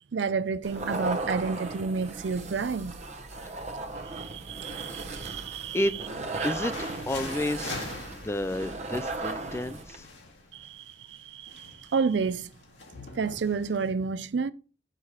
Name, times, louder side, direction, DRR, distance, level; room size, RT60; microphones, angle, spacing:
voice 1, 0.0-3.0 4.1-5.8 10.5-12.5 13.2-14.5, right 5 dB, 65° right, 0.4 m, -30 dB
sound 1, 0.6-10.0, right 2 dB, 40° right, 0.9 m, -36 dB
voice 2, 6.4-10.1, left 1 dB, 15° left, 0.4 m, -31 dB
sound 2, 6.7-13.9, left 3 dB, 90° left, 2.1 m, -43 dB
6.6 x 5.6 x 4.8 m
head